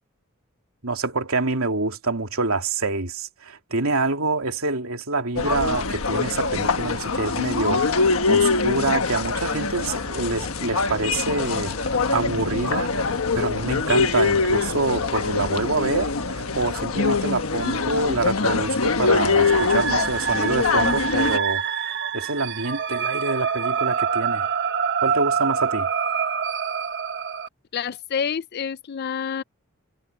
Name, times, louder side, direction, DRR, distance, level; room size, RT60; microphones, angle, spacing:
voice 1, 0.8-12.9 13.3-24.5 25.0-25.9, right 3 dB, 85° right, 2.9 m, -26 dB
sound 1, 5.4-21.4, left 4 dB, 75° left, 1.3 m, -23 dB
sound 2, 9.3-17.6, equal, 5° left, 5.0 m, -46 dB
sound 3, 19.3-27.5, right 7 dB, 55° right, 1.1 m, -26 dB
voice 2, 27.7-29.4, left 7 dB, 50° left, 0.4 m, -28 dB
head